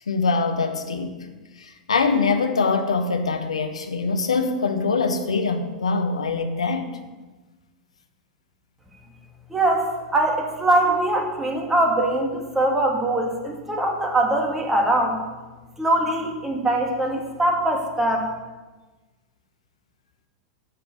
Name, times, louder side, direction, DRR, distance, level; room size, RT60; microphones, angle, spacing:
voice 1, 0.1-1.2 1.6-6.9, left 4 dB, 80° left, 6 dB, 1.2 m, -23 dB
voice 2, 9.5-15.2 15.8-18.3, right 1 dB, 10° right, 1 dB, 2.4 m, -22 dB
10.5 x 5.8 x 8.3 m, 1.2 s
figure-of-eight pair, 90°, 3 cm